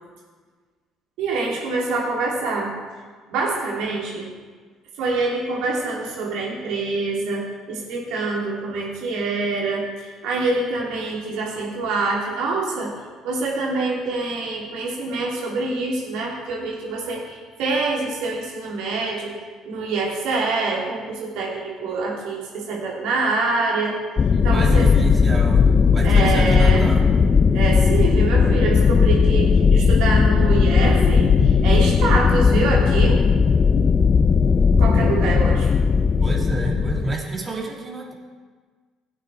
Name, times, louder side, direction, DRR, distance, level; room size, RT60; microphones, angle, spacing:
voice 1, 1.2-2.7 3.3-4.3 5.0-12.9 13.2-19.3 19.6-24.0 24.4-24.9 26.0-27.0 27.5-33.2 34.7-35.7, right 3 dB, 70° right, -3 dB, 2.9 m, -25 dB
sound 1, 24.2-37.2, left 5 dB, 40° left, 0.5 m, -17 dB
voice 2, 24.3-27.1 36.2-38.1, right 2 dB, 30° right, -1 dB, 2.6 m, -28 dB
16.5 x 8.8 x 3.4 m, 1.5 s
hypercardioid pair, 60°, 0 cm